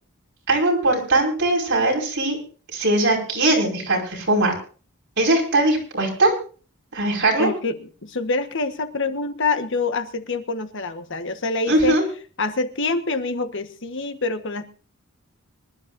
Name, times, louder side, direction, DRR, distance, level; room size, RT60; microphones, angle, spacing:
voice 1, 0.5-2.4 2.7-4.5 5.2-6.3 6.9-7.5 11.7-12.0, right 2 dB, 60° right, -1 dB, 5.2 m, -20 dB
voice 2, 7.4-12.0 12.4-14.6, left 3 dB, 60° left, 8 dB, 1.4 m, -26 dB
25.0 x 12.0 x 2.6 m, 0.39 s
head